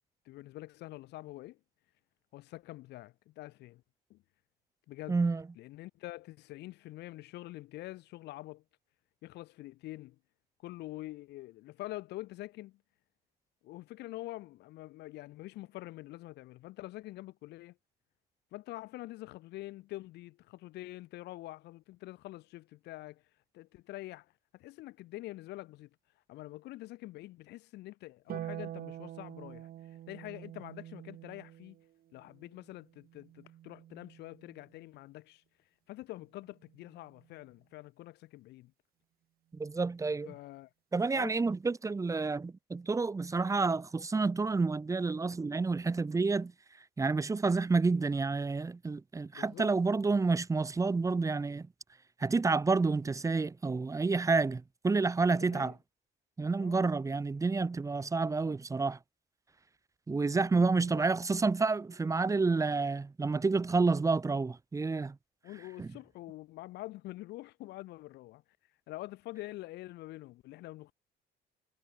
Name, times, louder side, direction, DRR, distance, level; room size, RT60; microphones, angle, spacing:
voice 1, 0.3-1.6 2.3-3.8 4.1-4.2 4.9-5.2 5.6-8.6 9.2-10.2 10.6-12.8 13.6-17.8 18.5-23.2 23.5-25.9 26.3-31.8 32.1-35.4 35.9-38.7 40.3-40.7 41.1-41.5 49.3-49.7 55.3-55.7 56.6-56.8 60.3-61.1 65.4-68.4 68.9-70.9, left 17 dB, 80° left, 4.3 m, -46 dB
voice 2, 5.1-5.4 39.5-40.3 40.9-46.5 47.0-51.7 52.2-55.7 56.4-59.0 60.1-65.2 65.8-65.9, right 4 dB, 20° right, 1.2 m, -29 dB
Harp, 28.3-34.8 36.4-37.4, right 12 dB, 60° right, 2.1 m, -47 dB
cardioid pair, 110°, 17 cm